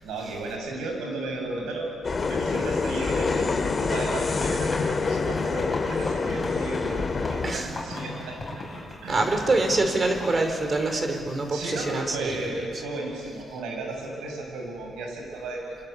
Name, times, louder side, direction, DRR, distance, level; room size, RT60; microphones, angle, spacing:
voice 1, 0.0-8.6 9.0-9.3 11.5-15.9, right 2 dB, 85° right, 1 dB, 7.3 m, -34 dB
sound 1, 2.0-7.5, left 4 dB, 35° left, 2.2 m, -27 dB
sound 2, 2.2-10.4, left 2 dB, 20° left, 7.2 m, -35 dB
voice 2, 7.4-7.8 9.1-12.6, right 2 dB, 35° right, 5 dB, 4.4 m, -25 dB
28.5 x 25.0 x 8.3 m, 2.5 s
cardioid pair, 90°, 0 cm